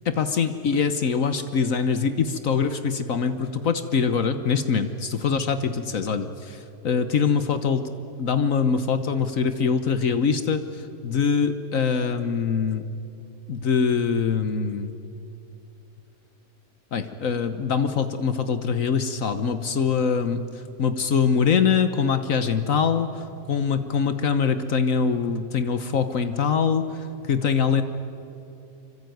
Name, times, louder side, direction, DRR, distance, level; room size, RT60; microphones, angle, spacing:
voice 1, 0.1-7.8 8.2-12.9 13.5-14.9 16.9-27.8, left 6 dB, 65° left, 10 dB, 1.4 m, -23 dB
25.5 x 25.0 x 9.3 m, 2.8 s
omnidirectional pair, 1.5 m